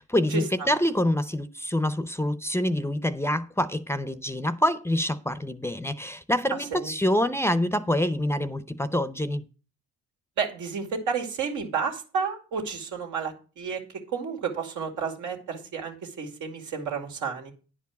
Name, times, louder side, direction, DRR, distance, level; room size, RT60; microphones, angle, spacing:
voice 1, 0.0-9.4, left 1 dB, 10° left, 0.6 m, -26 dB
voice 2, 10.4-13.8 14.1-17.5, right 6 dB, 85° right, 2.2 m, -31 dB
10.0 x 4.7 x 7.1 m
cardioid pair, 90°, 30 cm